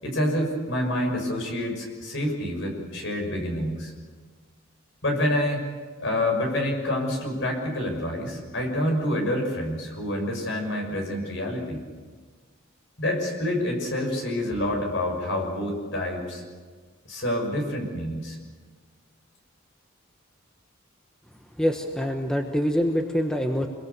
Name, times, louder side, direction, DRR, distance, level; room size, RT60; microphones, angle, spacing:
voice 1, 0.0-3.9 5.0-5.6 6.0-11.8 13.0-16.4 17.1-18.4, left 1 dB, 60° left, 2 dB, 6.2 m, -27 dB
voice 2, 21.6-23.7, equal, 5° left, 3 dB, 1.2 m, -25 dB
26.0 x 22.5 x 6.9 m, 1.5 s
head